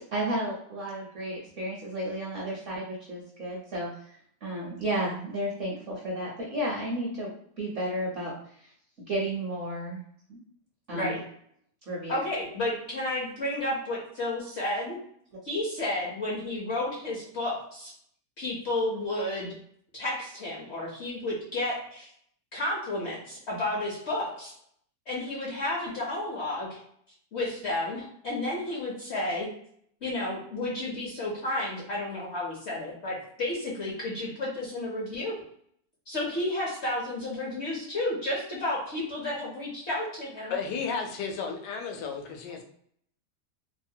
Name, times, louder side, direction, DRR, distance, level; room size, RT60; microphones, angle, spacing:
voice 1, 0.0-8.3 9.1-10.0 10.3-10.4 10.9-11.2 11.9-12.1, right 1 dB, 60° right, -3 dB, 0.8 m, -33 dB
voice 2, 12.1-15.0 15.4-17.9 18.4-19.5 19.9-22.1 22.5-24.5 25.1-26.8 27.3-29.5 30.0-35.4 36.1-40.6, left 1 dB, 60° left, -4 dB, 0.7 m, -32 dB
voice 3, 40.5-42.6, left 5 dB, 85° left, 3 dB, 1.2 m, -33 dB
3.0 x 2.1 x 2.6 m, 0.66 s
omnidirectional pair, 1.8 m